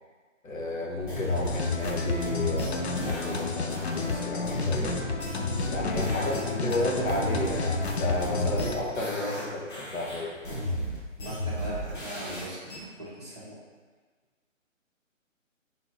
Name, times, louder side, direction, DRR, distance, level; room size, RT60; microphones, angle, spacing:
voice 1, 0.4-5.0 5.7-10.4, left 1 dB, 85° left, -3 dB, 1.3 m, -32 dB
sound 1, 1.0-6.4 6.7-9.4 9.7-12.8, equal, 40° left, 1.3 m, -33 dB
sound 2, 1.4-8.7, left 4 dB, 55° left, 0.5 m, -31 dB
voice 2, 11.2-12.7 13.0-13.6, equal, 15° right, -13 dB, 0.5 m, -39 dB
3.9 x 3.0 x 3.9 m, 1.4 s
hypercardioid pair, 155°, 39 cm